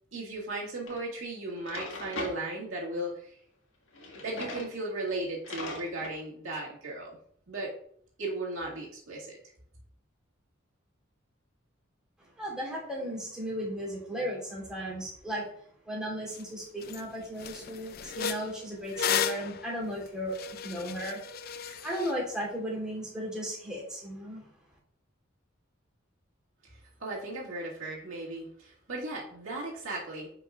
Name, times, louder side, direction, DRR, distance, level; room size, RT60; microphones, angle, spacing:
voice 1, 0.1-3.4 4.1-7.2 7.5-7.7 8.2-9.4 26.6-30.3, right 2 dB, 85° right, -4 dB, 2.1 m, -36 dB
Drawer open or close, 0.9-1.0 1.5-2.4 3.9-4.7 5.1-5.2 5.4-6.2, left 2 dB, 70° left, 1.6 m, -39 dB
voice 2, 12.2-15.5 15.8-21.2 21.5-24.5, equal, 5° right, -5 dB, 3.1 m, -36 dB
sound 1, 16.4-16.5 16.8-17.0 17.4-22.1, left 7 dB, 50° left, 0.4 m, -34 dB
9.7 x 5.1 x 2.4 m, 0.63 s
head